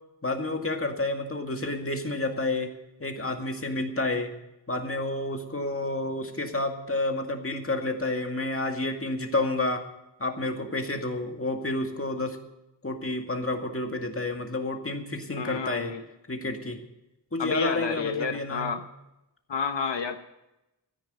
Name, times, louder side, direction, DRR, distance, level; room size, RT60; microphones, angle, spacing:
voice 1, 0.2-2.7 3.0-4.3 4.7-9.8 10.2-12.4 12.8-15.9 16.3-16.8 17.3-18.7, left 2 dB, 30° left, 4 dB, 2.2 m, -30 dB
voice 2, 15.3-16.0 17.4-18.8 19.5-20.2, left 5 dB, 85° left, 7 dB, 1.0 m, -30 dB
13.5 x 10.5 x 8.1 m, 0.92 s
wide cardioid pair, 70°, 42 cm